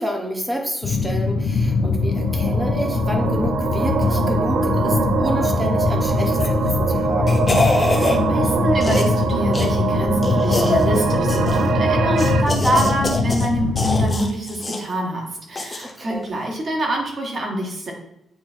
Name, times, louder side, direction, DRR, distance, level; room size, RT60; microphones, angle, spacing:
voice 1, 0.0-7.4 15.8-16.3, equal, 10° right, 2 dB, 1.0 m, -29 dB
sound 1, 0.8-14.2, left 3 dB, 55° left, 0.6 m, -22 dB
sound 2, 1.7-12.4, right 5 dB, 75° right, 0.5 m, -23 dB
sound 3, 6.3-6.7 7.0-8.2 8.8-9.2 9.5-9.7 10.2-10.9 11.3-11.7 12.2-13.5 13.7-14.8 15.6-15.9 16.2-16.3, left 2 dB, 20° left, 0.7 m, -24 dB
voice 2, 7.7-17.9, right 1 dB, 35° right, 0 dB, 1.5 m, -25 dB
8.7 x 3.2 x 4.4 m, 0.81 s
wide cardioid pair, 170°, 0 cm